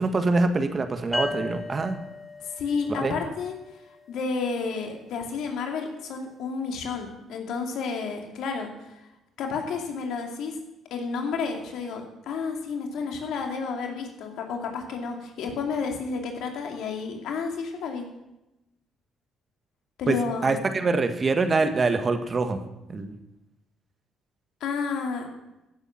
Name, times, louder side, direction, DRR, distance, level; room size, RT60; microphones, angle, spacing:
voice 1, 0.0-2.0 2.9-3.2 20.1-20.2 20.4-22.6 22.9-23.1, right 3 dB, 40° right, 7 dB, 1.7 m, -24 dB
sound 1, 1.1-4.6, left 2 dB, 10° left, 1.8 m, -36 dB
voice 2, 2.4-3.5 4.1-8.9 9.4-10.6 10.9-18.1 20.0-20.6 24.6-25.3, left 5 dB, 70° left, 2 dB, 2.6 m, -31 dB
15.0 x 8.0 x 5.9 m, 0.92 s
hypercardioid pair, 55°, 0 cm